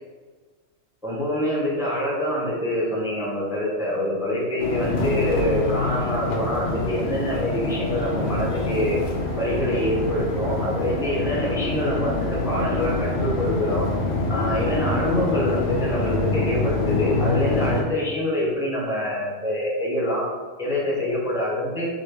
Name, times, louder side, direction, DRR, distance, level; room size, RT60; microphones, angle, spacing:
voice 1, 1.0-9.0 9.4-13.9 14.3-20.3 20.6-21.9, left 1 dB, 5° right, -5 dB, 0.5 m, -25 dB
sound 1, 4.6-17.8, left 2 dB, 65° left, 0.8 m, -26 dB
3.0 x 2.6 x 3.2 m, 1.5 s
omnidirectional pair, 1.3 m